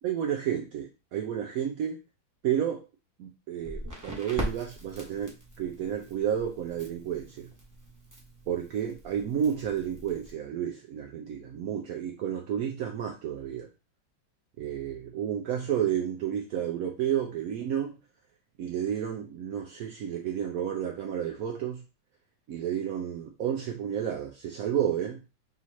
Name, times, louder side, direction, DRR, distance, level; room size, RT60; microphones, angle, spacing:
voice 1, 0.0-2.0 2.4-2.9 3.2-7.5 8.5-13.7 14.6-18.0 18.6-21.8 22.5-25.2, right 9 dB, 80° right, 2 dB, 0.8 m, -31 dB
Crackle, 3.6-10.3, equal, 15° right, 0.8 m, -41 dB
3.7 x 3.0 x 4.2 m, 0.30 s
omnidirectional pair, 2.1 m